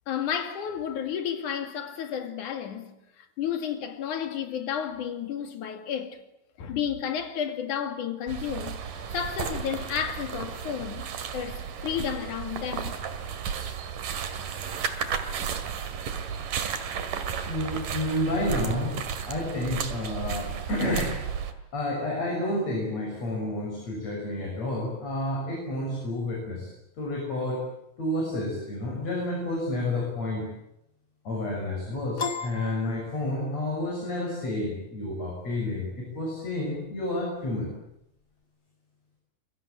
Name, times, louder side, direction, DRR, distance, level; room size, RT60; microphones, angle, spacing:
voice 1, 0.1-6.2 6.6-13.0, left 8 dB, 65° left, 3.6 m, -32 dB
sound 1, 8.3-21.5, right 7 dB, 70° right, 3.6 m, -33 dB
voice 2, 17.5-19.0 19.3-21.1 21.7-26.7 27.0-27.6 28.0-30.5 31.2-37.7, left 1 dB, 50° left, 7.8 m, -30 dB
Piano, 32.2-33.7, left 4 dB, 30° left, 1.9 m, -34 dB
27.5 x 23.0 x 9.0 m
omnidirectional pair, 4.0 m